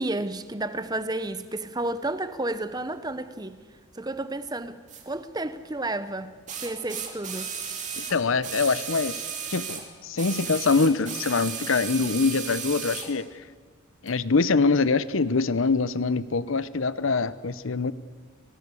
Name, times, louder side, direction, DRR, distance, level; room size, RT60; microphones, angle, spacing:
voice 1, 0.0-3.6 3.9-4.8 5.0-6.4 6.6-7.6, right 2 dB, 20° right, 0.9 m, -31 dB
sound 1, 4.9-5.0 6.5-9.9 10.2-13.1 14.1-14.2, right 7 dB, 35° right, 3.0 m, -35 dB
voice 2, 8.0-9.2 9.5-13.3 14.0-17.9, left 4 dB, 70° left, 0.8 m, -24 dB
25.0 x 18.5 x 8.4 m
head